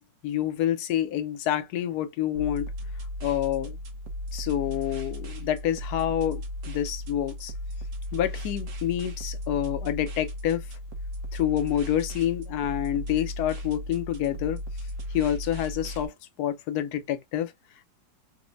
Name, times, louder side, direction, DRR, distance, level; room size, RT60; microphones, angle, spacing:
voice 1, 0.2-2.7 3.2-3.8 4.3-7.5 8.1-10.7 11.3-14.6 15.1-16.1 16.4-17.5, left 11 dB, 70° left, 1.0 m, -28 dB
sound 1, 2.3-16.1, left 1 dB, 55° right, 0.9 m, -36 dB
4.1 x 2.2 x 2.6 m
omnidirectional pair, 2.0 m